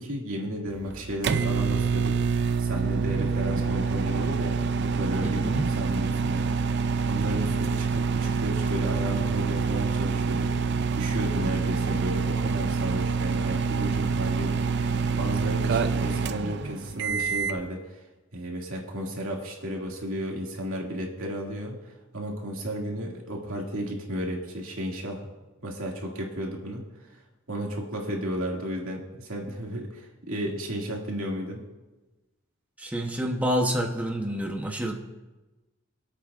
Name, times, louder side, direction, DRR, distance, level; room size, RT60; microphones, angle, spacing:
voice 1, 0.0-6.4 7.0-10.5 10.9-18.0 18.3-25.3 25.6-27.2 27.5-31.6, equal, 80° right, -1 dB, 2.2 m, -33 dB
sound 1, 0.7-17.6, right 5 dB, 55° right, 0.4 m, -26 dB
voice 2, 5.2-5.7 32.8-35.0, equal, 5° right, 1 dB, 0.8 m, -28 dB
23.5 x 8.3 x 2.5 m, 1.1 s
head